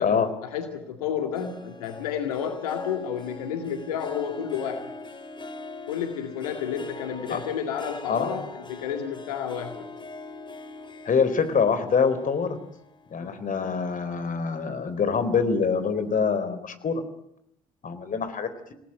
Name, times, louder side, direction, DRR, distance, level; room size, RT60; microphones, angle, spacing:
voice 1, 0.0-4.9 5.9-9.9 13.2-13.4, left 8 dB, 80° left, 5 dB, 2.2 m, -31 dB
Harp, 1.3-14.1 14.5-14.9 15.4-15.5, left 3 dB, 25° left, 3.7 m, -42 dB
voice 2, 11.1-12.6 13.1-17.0 17.8-18.7, left 5 dB, 45° left, 11 dB, 4.0 m, -25 dB
28.0 x 19.0 x 9.1 m, 0.81 s
hypercardioid pair, 50°, 19 cm